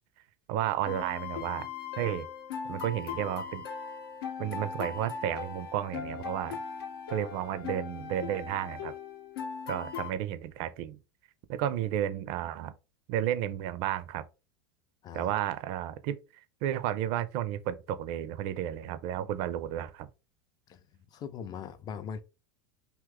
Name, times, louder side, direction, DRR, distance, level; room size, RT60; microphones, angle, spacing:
voice 1, 0.5-1.7 2.0-2.3 2.7-3.6 4.4-6.6 7.1-8.9 9.7-11.0 11.5-12.7 13.1-14.2 15.1-16.2 16.6-20.1, right 11 dB, 50° right, 0.4 m, -32 dB
sound 1, 0.8-10.1, left 6 dB, 70° left, 0.7 m, -39 dB
voice 2, 21.1-22.2, left 7 dB, 30° left, 0.5 m, -40 dB
2.8 x 2.2 x 3.5 m
hypercardioid pair, 90°, 13 cm